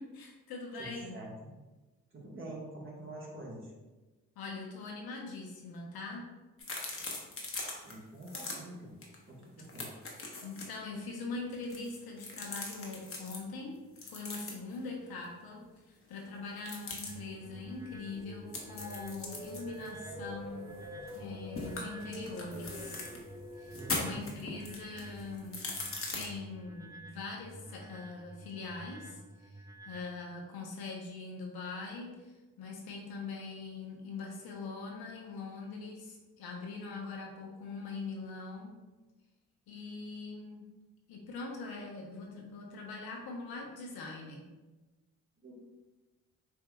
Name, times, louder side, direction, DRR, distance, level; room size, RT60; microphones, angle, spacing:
voice 1, 0.0-1.2 4.4-6.3 10.4-20.8 21.1-23.0 23.6-38.8 39.7-40.7 41.1-44.5, left 3 dB, 70° left, -1 dB, 0.8 m, -42 dB
voice 2, 0.8-1.5 2.1-3.7 7.8-8.9 9.3-9.9 23.7-24.4 45.4-45.6, right 1 dB, 30° right, -4 dB, 1.4 m, -46 dB
sound 1, 6.6-7.9 8.2-8.6 9.0-9.2 9.4-10.8 11.5-13.4 14.0-14.8 16.6-17.1 18.5-21.3 21.6-23.2 23.7-26.2, left 3 dB, 35° left, 1.0 m, -40 dB
sound 2, 17.1-30.0, right 2 dB, 10° right, 0.4 m, -51 dB
sound 3, 17.1-27.2, equal, 80° right, 0.8 m, -48 dB
4.4 x 2.7 x 2.3 m, 1.2 s
hypercardioid pair, 40°, 38 cm